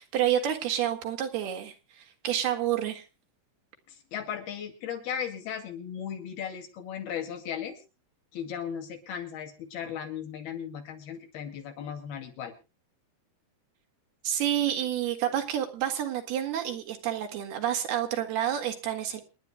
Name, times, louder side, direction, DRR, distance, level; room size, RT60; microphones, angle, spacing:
voice 1, 0.0-3.0 14.2-19.2, right 10 dB, 80° right, 4 dB, 3.9 m, -29 dB
voice 2, 3.9-7.8 8.3-12.5, left 8 dB, 80° left, 4 dB, 4.1 m, -36 dB
27.5 x 11.0 x 2.2 m, 0.30 s
omnidirectional pair, 4.5 m